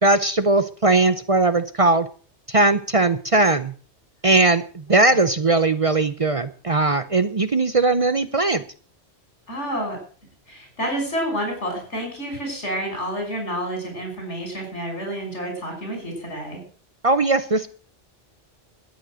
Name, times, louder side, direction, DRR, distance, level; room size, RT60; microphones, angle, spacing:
voice 1, 0.0-2.1 2.5-3.7 4.2-8.6 17.0-17.7, right 2 dB, 35° right, 12 dB, 0.6 m, -19 dB
voice 2, 9.5-10.0 10.5-16.6, equal, 85° left, 2 dB, 6.4 m, -29 dB
13.0 x 9.5 x 6.3 m, 0.41 s
omnidirectional pair, 1.2 m